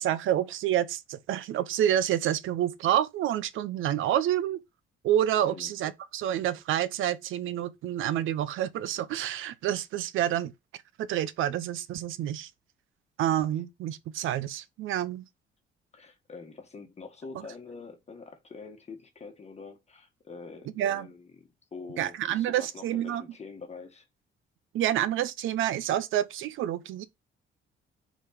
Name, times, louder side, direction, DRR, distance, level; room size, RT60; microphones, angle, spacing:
voice 1, 0.0-4.6 5.0-10.5 11.0-12.5 13.2-15.2 20.8-21.1 22.0-23.2 24.7-27.0, right 11 dB, 85° right, 0.8 m, -28 dB
voice 2, 15.9-24.1, left 4 dB, 35° left, 1.7 m, -45 dB
5.2 x 5.0 x 5.9 m
cardioid pair, 90°, 20 cm